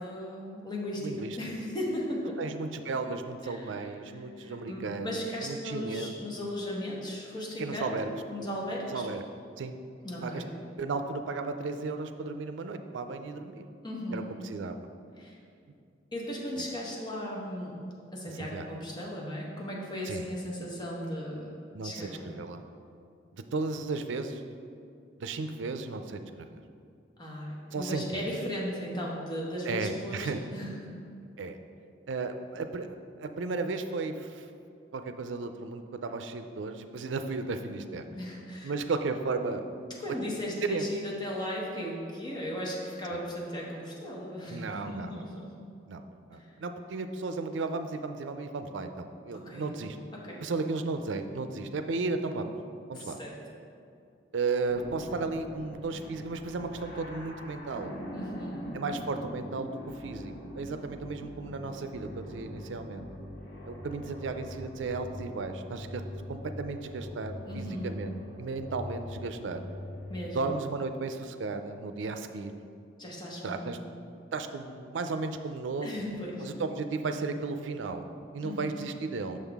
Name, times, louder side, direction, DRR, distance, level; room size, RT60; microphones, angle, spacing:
voice 1, 0.0-2.3 3.5-3.7 4.4-9.0 10.0-10.5 13.8-14.3 15.2-15.4 16.1-17.8 18.1-21.5 21.8-22.2 27.2-31.0 38.2-38.7 40.0-45.5 49.4-49.7 50.1-50.5 52.9-53.4 58.1-58.6 67.5-68.0 70.1-70.4 73.0-73.7 75.8-76.5 78.4-78.8, left 1 dB, 25° left, -3 dB, 1.1 m, -36 dB
voice 2, 1.0-1.6 2.4-6.1 7.6-8.1 8.9-9.2 9.6-9.8 10.2-10.4 10.8-13.7 14.1-14.8 16.6-16.7 18.4-18.7 20.0-20.3 21.7-22.6 23.3-24.4 25.2-26.5 27.7-28.3 29.6-30.4 31.4-31.6 32.1-34.5 34.9-38.0 38.6-39.7 40.6-40.9 43.1-43.2 44.5-45.3 45.9-50.0 50.4-52.5 52.9-53.2 54.3-57.9 58.7-63.1 63.6-66.0 66.3-69.6 70.3-72.5 73.4-73.8 74.3-75.9 76.4-78.1 78.3-79.4, right 3 dB, 90° right, 8 dB, 0.4 m, -34 dB
sound 1, 54.7-70.2, equal, 85° left, 1.4 m, -42 dB
6.4 x 5.6 x 3.5 m, 2.5 s
head